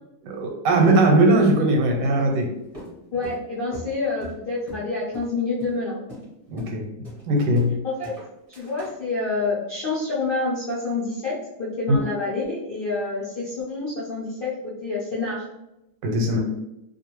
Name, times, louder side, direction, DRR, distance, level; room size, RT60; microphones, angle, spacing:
voice 1, 0.2-2.5 6.5-6.9 7.3-7.8 16.0-16.4, right 1 dB, 90° right, 2 dB, 1.3 m, -19 dB
sound 1, 2.7-4.9 5.1-5.3 5.6-5.8 6.1-6.3 6.6-6.8 7.0-7.8 8.0-9.0, equal, 30° right, 0.7 m, -39 dB
voice 2, 3.1-6.0 7.8-8.1 8.6-15.4, left 3 dB, 65° left, -9 dB, 0.5 m, -28 dB
2.5 x 2.4 x 3.0 m, 0.90 s
omnidirectional pair, 1.9 m